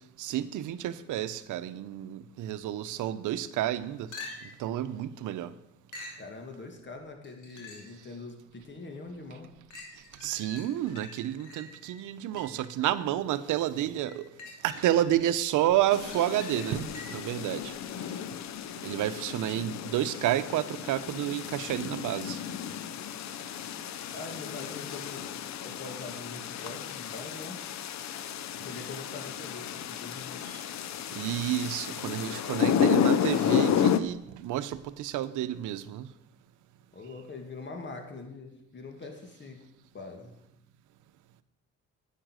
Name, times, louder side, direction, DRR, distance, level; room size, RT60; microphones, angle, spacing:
voice 1, 0.2-5.5 10.2-14.3 14.6-17.7 18.8-22.4 30.4-30.6 31.1-36.1, right 12 dB, 85° right, 13 dB, 0.8 m, -30 dB
sound 1, 4.1-4.7 5.9-6.3 7.2-8.0 8.6-8.7 9.7-12.7 14.0-15.3 15.7-17.4 21.1-21.2, left 3 dB, 80° left, 3.0 m, -46 dB
voice 2, 6.2-9.5 24.1-27.6 28.5-30.4 36.9-39.6 39.9-40.3, left 3 dB, 40° left, 4 dB, 2.3 m, -43 dB
sound 2, 15.9-34.0, left 8 dB, 65° left, 0.7 m, -32 dB
10.0 x 8.4 x 6.4 m, 0.89 s
cardioid pair, 90°, 30 cm